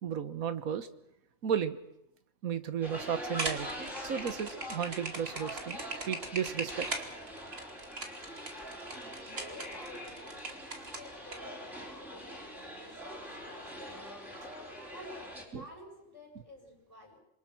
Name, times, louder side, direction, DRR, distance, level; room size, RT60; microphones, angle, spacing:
voice 1, 0.0-0.9 1.4-1.8 2.4-5.8 6.1-7.1 8.9-9.4 15.5-15.6, right 8 dB, 90° right, 11 dB, 1.6 m, -34 dB
sound 1, 2.8-15.4, equal, ahead, 4.5 m, -44 dB
sound 2, 3.2-11.4, right 2 dB, 45° right, 2.5 m, -39 dB
voice 2, 9.3-10.5 10.8-14.0 14.9-17.2, left 1 dB, 25° right, -1 dB, 7.1 m, -51 dB
26.5 x 23.0 x 6.1 m, 0.81 s
omnidirectional pair, 1.4 m